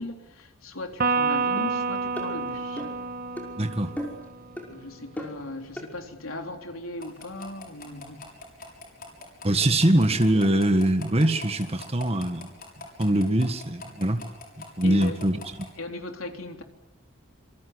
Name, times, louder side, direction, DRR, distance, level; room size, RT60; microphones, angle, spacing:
voice 1, 0.0-2.8 4.7-8.3 14.8-15.2 15.8-16.6, left 2 dB, 85° left, 3.6 m, -37 dB
Electric guitar, 1.0-4.5, right 4 dB, 45° right, 1.5 m, -28 dB
sound 1, 1.6-1.7 2.2-2.3 2.8-3.0 3.4-3.5 4.0-4.3 4.6-4.7 5.2-5.4 5.8-5.9, equal, 10° left, 5.7 m, -35 dB
voice 2, 3.6-3.9 9.4-12.5 13.0-14.2 14.8-15.4, right 1 dB, 30° right, 1.7 m, -22 dB
sound 2, 7.0-15.7, left 3 dB, 45° left, 7.0 m, -45 dB
27.0 x 24.0 x 8.1 m
head